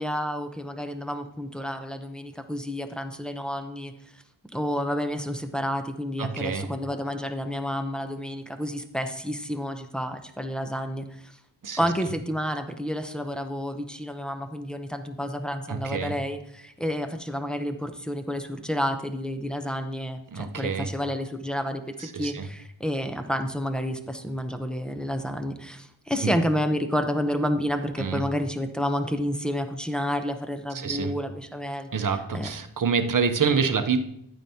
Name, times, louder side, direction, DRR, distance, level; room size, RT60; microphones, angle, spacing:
voice 1, 0.0-3.9 4.5-11.4 11.8-32.1 32.3-32.5, equal, ahead, 6 dB, 0.7 m, -30 dB
voice 2, 6.2-6.7 11.6-11.8 15.7-16.2 20.3-20.9 22.0-22.5 26.2-26.3 28.0-28.2 30.7-31.1 31.9-34.0, right 5 dB, 45° right, 8 dB, 0.8 m, -27 dB
10.0 x 8.9 x 2.8 m, 0.76 s
wide cardioid pair, 85°, 47 cm